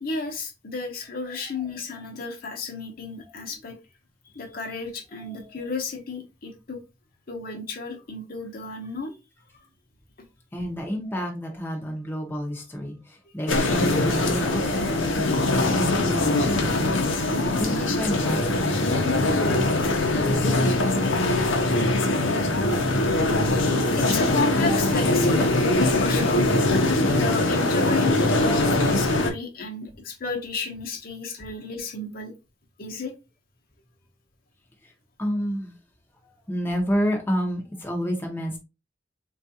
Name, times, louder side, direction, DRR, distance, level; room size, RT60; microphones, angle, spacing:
voice 1, 0.0-3.8 4.2-6.8 7.3-9.2 9.5-9.6 23.9-25.5 25.9-26.5 27.1-32.3 32.8-33.1, left 4 dB, 50° left, 0.7 m, -32 dB
voice 2, 5.2-5.6 10.5-19.5 34.8-34.9 35.2-35.7 36.2-38.6, equal, 10° left, 0.6 m, -30 dB
sound 1, 13.5-29.3, left 2 dB, 85° left, 0.6 m, -22 dB
3.5 x 2.3 x 2.7 m
head